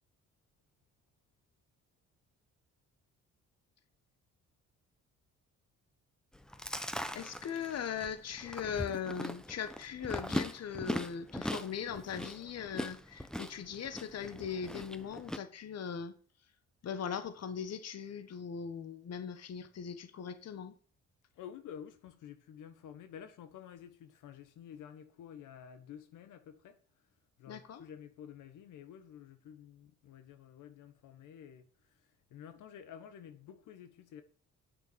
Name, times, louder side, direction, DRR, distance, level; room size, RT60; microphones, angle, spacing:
Chewing mastication, 6.3-15.4, equal, ahead, 1.0 m, -40 dB
voice 1, 7.1-16.1 16.8-20.7 27.5-27.8, left 7 dB, 55° left, 1.4 m, -39 dB
voice 2, 21.3-26.8 27.4-34.2, left 9 dB, 85° left, 1.3 m, -51 dB
9.3 x 6.6 x 6.9 m
cardioid pair, 90°, 30 cm